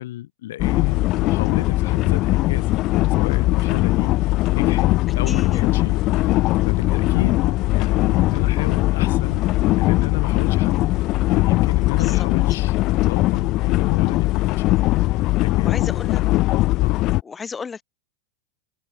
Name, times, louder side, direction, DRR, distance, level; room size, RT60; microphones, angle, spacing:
voice 1, 0.0-2.7 3.1-4.9 5.2-9.4 9.7-10.7 11.0-15.9 16.8-17.0, left 14 dB, 75° left, 6.3 m, -32 dB
sound 1, 0.6-17.2, left 18 dB, 35° left, 1.1 m, -20 dB
voice 2, 5.3-5.6 12.0-12.3 15.6-16.2 17.2-17.8, left 5 dB, 15° left, 3.2 m, -32 dB
supercardioid pair, 155°, 0 cm